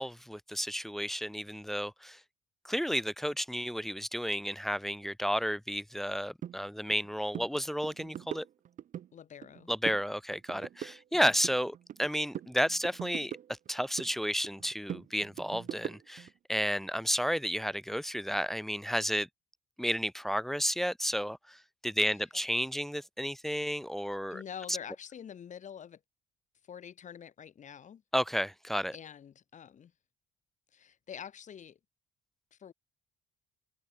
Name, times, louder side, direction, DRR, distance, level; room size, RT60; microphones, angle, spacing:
voice 1, 0.0-2.2 2.6-8.5 9.7-13.4 13.7-19.3 19.8-24.4 24.7-24.8 28.1-28.9, equal, ahead, 0.7 m, -32 dB
sound 1, 6.4-6.6 6.9-7.1 7.3-7.5 7.8-9.1 9.4-10.1 10.3-12.1 12.3-14.1 14.4-16.3, right 10 dB, 50° right, 1.0 m, -41 dB
voice 2, 9.1-9.7 24.3-26.0 26.7-28.0 28.9-29.9 30.7-31.8 32.5-32.7, left 8 dB, 45° left, 5.7 m, -46 dB
open air
cardioid pair, 110°, 17 cm